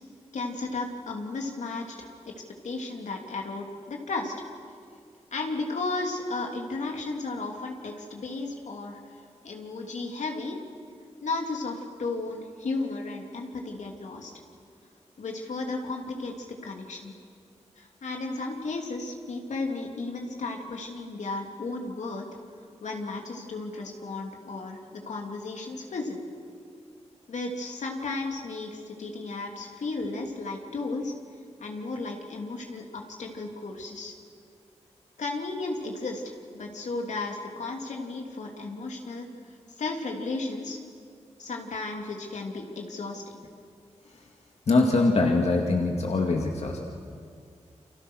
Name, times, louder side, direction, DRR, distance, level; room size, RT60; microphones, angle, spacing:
voice 1, 0.3-2.3 2.6-4.3 5.3-9.0 9.4-10.6 11.2-14.3 15.2-17.1 17.8-22.3 22.8-26.2 27.3-31.1 31.6-34.1 35.2-39.3 39.8-40.8 41.4-43.4, left 3 dB, 85° left, 2 dB, 3.1 m, -34 dB
voice 2, 44.7-46.8, left 3 dB, 65° left, 1 dB, 2.2 m, -23 dB
29.5 x 25.0 x 6.5 m, 2.3 s
wide cardioid pair, 80°, 12 cm